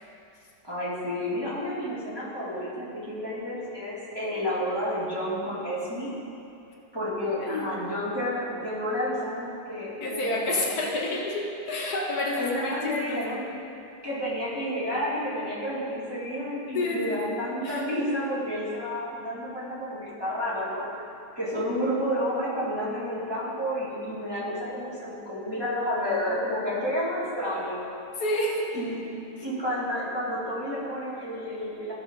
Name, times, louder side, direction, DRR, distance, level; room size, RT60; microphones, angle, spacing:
voice 1, 0.6-6.1 6.9-10.8 12.3-13.5 14.0-20.9 21.4-27.8 28.7-29.0 29.4-31.9, equal, 15° right, -9 dB, 2.2 m, -30 dB
voice 2, 10.0-13.4 16.7-17.2 17.6-17.8 28.2-28.7, left 1 dB, 70° left, -1 dB, 1.5 m, -29 dB
14.5 x 6.2 x 3.7 m, 2.7 s
omnidirectional pair, 1.8 m